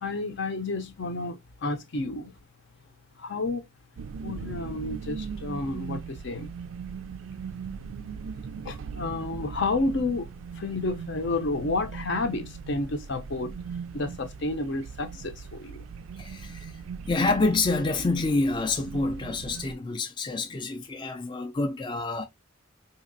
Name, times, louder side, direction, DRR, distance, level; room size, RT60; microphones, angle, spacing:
voice 1, 0.0-2.3 3.2-3.7 4.2-6.5 8.6-13.5 13.9-15.9, left 2 dB, 60° left, 0.7 m, -31 dB
sound 1, 4.0-19.7, right 6 dB, 85° right, 0.3 m, -39 dB
voice 2, 16.2-16.7 17.1-22.3, left 3 dB, 25° left, 0.4 m, -27 dB
4.1 x 2.8 x 2.6 m
head